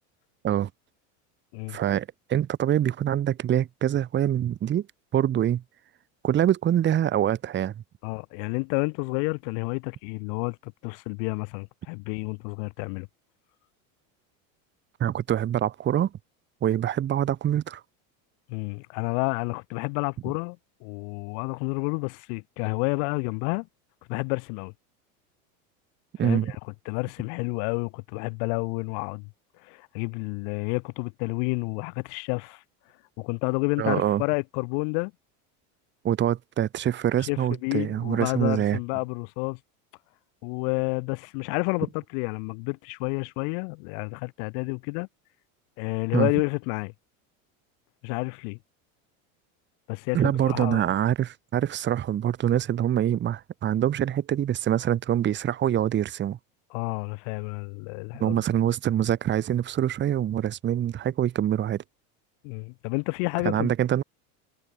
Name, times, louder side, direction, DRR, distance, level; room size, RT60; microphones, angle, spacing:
voice 1, 1.7-4.9 5.1-5.6 6.2-7.7 15.0-16.1 16.6-17.8 26.2-26.5 33.8-34.2 36.0-38.8 46.1-46.3 50.1-56.4 58.2-61.8 63.4-64.0, right 10 dB, 25° right, 1.1 m, -25 dB
voice 2, 8.0-13.1 18.5-23.7 24.1-24.7 26.2-26.6 26.9-29.3 29.6-32.6 33.2-35.1 37.3-39.6 40.4-45.1 45.8-46.9 48.0-48.6 49.9-50.9 56.7-58.4 62.4-63.7, left 40 dB or more, 60° left, 4.2 m, -30 dB
supercardioid pair, 125°, 42 cm